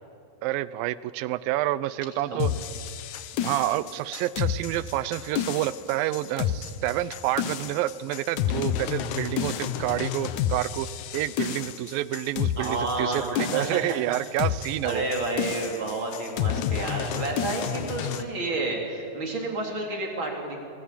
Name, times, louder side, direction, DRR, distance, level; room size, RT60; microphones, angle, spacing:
voice 1, 0.4-2.5 3.4-10.9 11.1-15.0, right 14 dB, 80° right, 17 dB, 2.3 m, -28 dB
sound 1, 2.4-18.2, left 10 dB, 70° left, 2.0 m, -30 dB
voice 2, 12.6-13.8 14.8-20.6, right 2 dB, 35° right, 1 dB, 4.1 m, -30 dB
25.5 x 20.5 x 8.6 m, 2.4 s
omnidirectional pair, 4.3 m